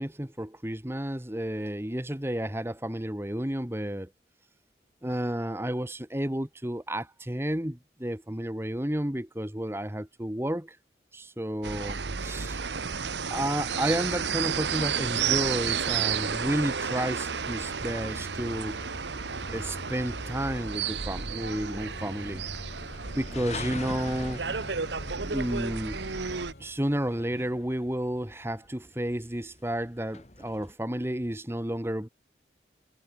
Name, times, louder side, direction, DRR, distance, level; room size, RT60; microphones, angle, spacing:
voice 1, 0.0-4.1 5.0-10.8 11.1-12.6 13.3-18.8 19.5-22.4 23.2-24.4 25.2-26.0 26.6-32.1, right 1 dB, 15° right, 1.3 m, -31 dB
sound 1, 11.6-26.5, right 6 dB, 85° right, 1.2 m, -32 dB
sound 2, 17.3-30.7, left 2 dB, 40° left, 3.6 m, -45 dB
Organ, 17.6-26.8, left 1 dB, 65° left, 2.5 m, -45 dB
head